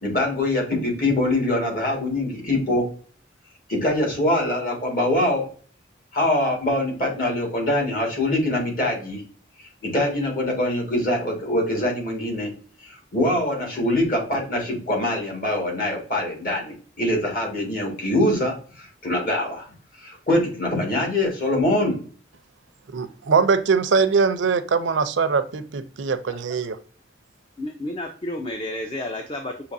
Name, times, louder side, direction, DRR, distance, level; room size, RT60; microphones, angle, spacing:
voice 1, 0.0-2.8 3.7-5.5 6.1-9.2 9.6-12.5 12.8-19.7 20.0-22.0, left 1 dB, 45° left, -1 dB, 1.7 m, -23 dB
voice 2, 22.9-26.8, right 5 dB, 75° right, 12 dB, 0.4 m, -22 dB
voice 3, 27.6-29.7, left 1 dB, 25° left, 4 dB, 0.4 m, -31 dB
6.5 x 2.9 x 2.6 m, 0.43 s
head